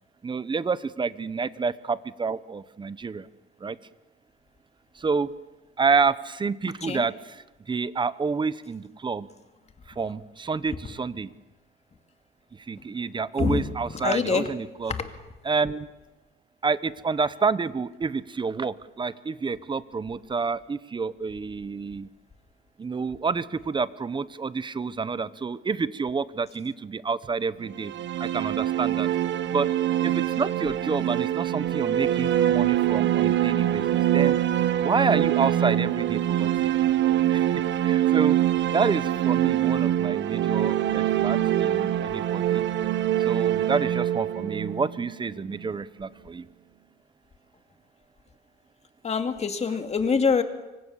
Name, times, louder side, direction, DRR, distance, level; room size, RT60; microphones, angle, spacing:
voice 1, 0.2-3.3 3.6-3.8 4.9-5.3 5.8-7.1 7.7-9.3 10.0-11.3 12.5-14.9 15.4-15.9 16.6-22.1 22.8-27.9 28.2-29.1 29.5-29.7 30.0-34.4 34.8-36.7 37.3-37.5 37.8-38.4 38.7-42.6 43.2-46.5, right 5 dB, 20° right, 16 dB, 0.9 m, -28 dB
voice 2, 13.4-14.5 14.9-15.1 49.0-50.4, left 5 dB, 30° left, 7 dB, 2.3 m, -25 dB
sound 1, 27.7-45.6, right 12 dB, 60° right, 1.1 m, -24 dB
25.0 x 25.0 x 7.2 m, 1.1 s
cardioid pair, 125°, 21 cm